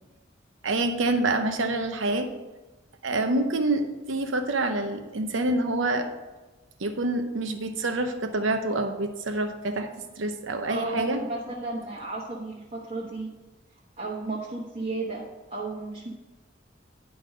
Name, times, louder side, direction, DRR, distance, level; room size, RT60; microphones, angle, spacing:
voice 1, 0.6-2.3 3.0-6.1 6.8-9.9 10.2-11.2, right 2 dB, 80° right, 7 dB, 0.8 m, -27 dB
voice 2, 10.7-13.3 14.0-15.2 15.5-16.1, right 2 dB, 35° right, -5 dB, 1.1 m, -33 dB
11.0 x 4.0 x 5.1 m, 1.1 s
head